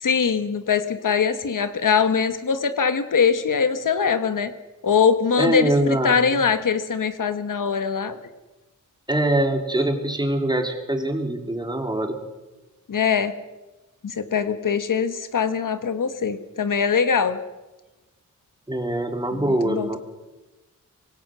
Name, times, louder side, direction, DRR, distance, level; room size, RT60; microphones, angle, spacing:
voice 1, 0.0-4.5 4.8-8.2 12.9-13.3 14.0-17.4 19.3-20.0, left 6 dB, 80° left, 10 dB, 1.6 m, -22 dB
voice 2, 5.4-6.2 9.1-12.2 18.7-20.0, right 1 dB, 15° right, 4 dB, 3.1 m, -23 dB
25.5 x 19.0 x 6.3 m, 1.1 s
wide cardioid pair, 120°, 31 cm